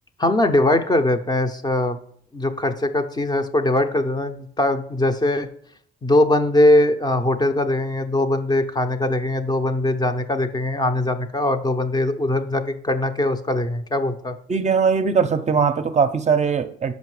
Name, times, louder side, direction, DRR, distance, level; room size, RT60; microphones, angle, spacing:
voice 1, 0.2-2.0 2.3-5.5 6.0-14.4, left 1 dB, 20° left, 8 dB, 0.5 m, -21 dB
voice 2, 14.5-16.9, right 6 dB, 35° right, 9 dB, 0.6 m, -20 dB
5.3 x 5.1 x 4.8 m, 0.62 s
cardioid pair, 90°, 20 cm